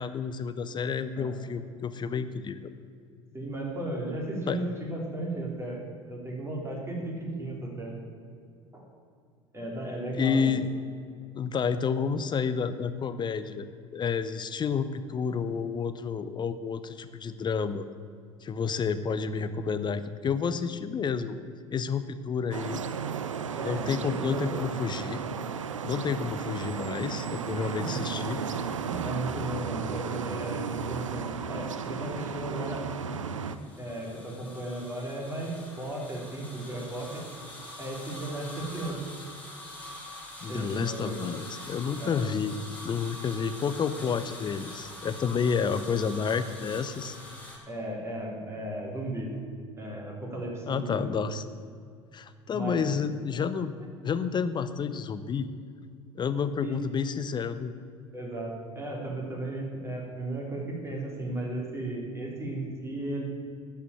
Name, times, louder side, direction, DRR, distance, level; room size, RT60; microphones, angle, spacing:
voice 1, 0.0-2.7 4.5-4.6 10.1-10.7 11.3-13.7 13.9-17.9 18.4-21.4 21.7-22.8 23.6-25.2 25.8-28.4 40.4-42.5 42.8-47.2 50.7-51.4 52.1-53.7 54.0-55.5 56.2-57.7, left 6 dB, 30° left, 12 dB, 0.7 m, -30 dB
voice 2, 3.3-5.8 6.1-8.0 8.7-8.8 9.5-10.6 23.6-24.7 27.6-27.9 28.4-32.8 33.8-37.2 37.8-39.0 40.5-41.2 42.0-42.2 47.7-49.3 49.8-51.1 52.5-52.9 56.6-56.8 58.1-63.2, right 1 dB, 15° right, -1 dB, 3.6 m, -35 dB
sound 1, 22.5-33.6, right 7 dB, 80° right, 0.5 m, -34 dB
sound 2, 33.5-47.6, left 1 dB, 10° left, 3.5 m, -44 dB
12.5 x 5.8 x 8.7 m, 2.2 s
figure-of-eight pair, 70°, 16 cm